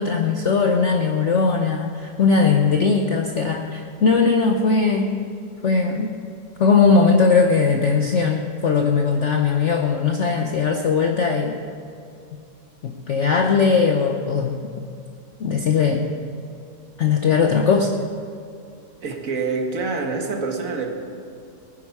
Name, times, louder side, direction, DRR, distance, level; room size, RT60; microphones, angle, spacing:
voice 1, 0.0-5.2 5.6-6.2 6.6-11.6 12.8-14.6 15.4-16.1 17.0-18.0, left 5 dB, 55° left, 3 dB, 0.9 m, -19 dB
voice 2, 19.0-20.9, right 4 dB, 50° right, 2 dB, 1.9 m, -26 dB
19.5 x 10.0 x 4.7 m, 2.5 s
omnidirectional pair, 1.8 m